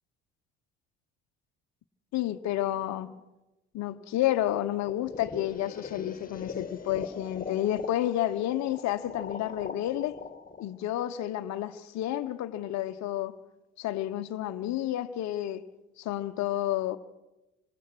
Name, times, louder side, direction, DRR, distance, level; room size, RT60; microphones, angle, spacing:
voice 1, 2.1-3.1 3.7-10.2 10.6-13.4 13.8-15.7 16.0-17.0, left 13 dB, 55° left, 1.1 m, -30 dB
sound 1, 4.9-11.8, left 5 dB, 25° left, 2.3 m, -41 dB
26.0 x 22.0 x 6.1 m
hypercardioid pair, 60°, 34 cm